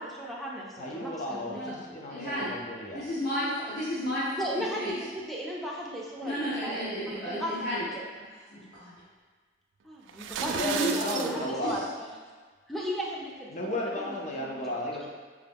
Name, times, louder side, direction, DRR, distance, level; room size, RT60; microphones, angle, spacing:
voice 1, 0.0-1.9 4.4-6.4 6.6-6.8 7.1-8.0 9.8-12.1 12.7-13.5 13.8-14.6, equal, ahead, -4 dB, 0.6 m, -36 dB
voice 2, 0.8-3.0 10.4-11.8 13.5-15.1, left 1 dB, 40° left, -1 dB, 0.6 m, -34 dB
voice 3, 2.1-2.6 2.9-4.3 4.8-4.9 6.2-7.9 8.5-8.9 10.6-11.3 11.6-11.7, equal, 60° left, -16 dB, 1.5 m, -32 dB
sound 1, 10.1-11.3, right 6 dB, 85° right, 0.3 m, -33 dB
4.8 x 2.2 x 3.4 m, 1.5 s
head